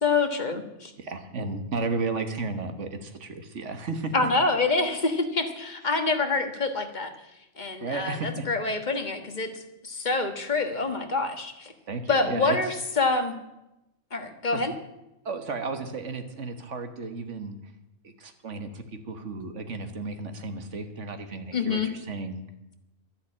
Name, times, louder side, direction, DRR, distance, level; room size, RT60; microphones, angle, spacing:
voice 1, 0.0-0.9 4.1-7.1 7.6-11.7 12.1-13.3 14.1-14.7 21.5-21.9, left 3 dB, 40° left, 6 dB, 1.6 m, -26 dB
voice 2, 1.0-4.1 7.8-8.5 11.9-12.6 14.5-14.6 15.3-17.6 18.0-22.5, right 3 dB, 75° right, 7 dB, 1.7 m, -33 dB
12.0 x 10.5 x 8.6 m, 0.92 s
omnidirectional pair, 1.3 m